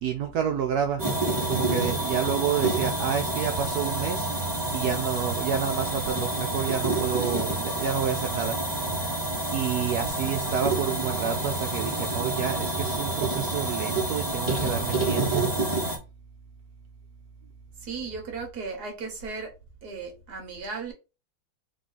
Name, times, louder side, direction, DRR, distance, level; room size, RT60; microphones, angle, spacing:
voice 1, 0.0-1.1 1.5-8.6 8.9-9.0 9.5-15.5, right 8 dB, 70° right, 0.9 m, -29 dB
sound 1, 1.0-16.0, right 2 dB, 15° right, 1.0 m, -28 dB
voice 2, 17.8-19.5 19.8-20.9, right 4 dB, 55° right, 1.8 m, -36 dB
3.7 x 3.2 x 4.0 m
omnidirectional pair, 2.1 m